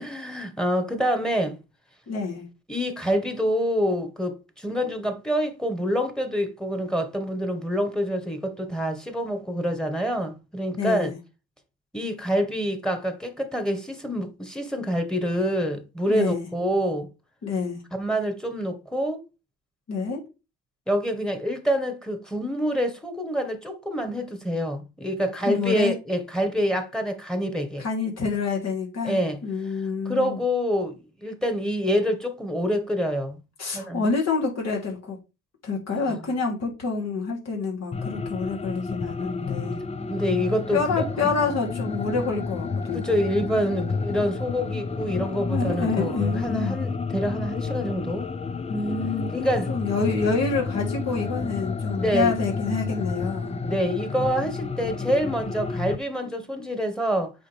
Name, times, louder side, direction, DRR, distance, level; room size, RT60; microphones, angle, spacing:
voice 1, 0.0-1.6 2.7-11.1 11.9-17.1 17.9-19.2 20.9-27.8 29.0-29.4 30.0-33.4 33.7-34.0 36.1-36.2 40.1-41.3 42.9-48.3 49.3-49.8 51.9-52.3 53.6-57.3, equal, ahead, 1.6 m, -26 dB
voice 2, 2.1-2.5 10.8-11.2 16.1-16.5 17.4-17.8 19.9-20.2 25.5-25.9 27.8-30.4 33.6-35.2 35.6-39.8 40.7-43.1 45.5-46.8 48.7-49.3 49.7-53.5, left 4 dB, 60° left, 3.2 m, -27 dB
sound 1, 37.9-56.0, left 4 dB, 20° left, 0.6 m, -30 dB
7.9 x 5.1 x 3.5 m
cardioid pair, 90°, 30 cm